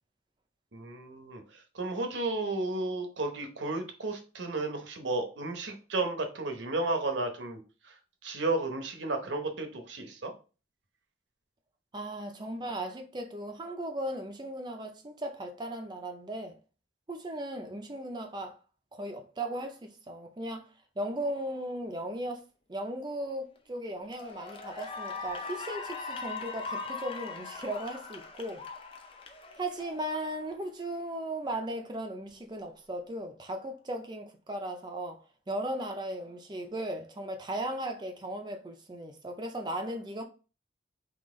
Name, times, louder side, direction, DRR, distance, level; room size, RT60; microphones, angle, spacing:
voice 1, 0.7-1.4 1.7-7.6 8.2-10.3, right 2 dB, 80° right, 0.9 m, -33 dB
voice 2, 11.9-16.6 17.1-18.6 18.9-20.7 21.0-22.4 22.7-28.6 29.6-35.2 35.5-40.2, right 1 dB, 25° right, 0.5 m, -37 dB
Cheering / Applause, 23.3-23.6 24.0-30.5, left 4 dB, 30° left, 0.5 m, -40 dB
3.9 x 2.9 x 3.7 m
head